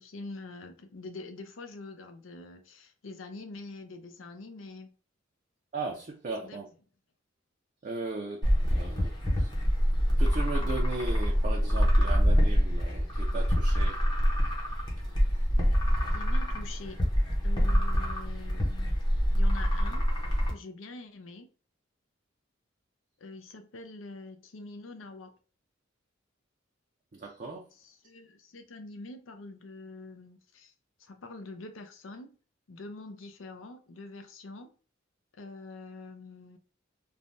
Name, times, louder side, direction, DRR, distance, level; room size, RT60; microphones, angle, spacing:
voice 1, 0.0-4.9 6.4-6.6 16.1-17.0 17.4-18.9 19.3-20.1 20.5-21.5 23.2-25.3 27.8-30.7 31.0-32.4 32.7-34.7 35.3-36.6, left 2 dB, 85° left, 0.6 m, -45 dB
voice 2, 5.7-6.7 7.8-9.5 10.2-14.0 27.1-27.7, right 3 dB, 40° right, 0.5 m, -37 dB
sound 1, 8.4-20.5, equal, 25° left, 0.8 m, -25 dB
3.3 x 2.2 x 2.6 m
head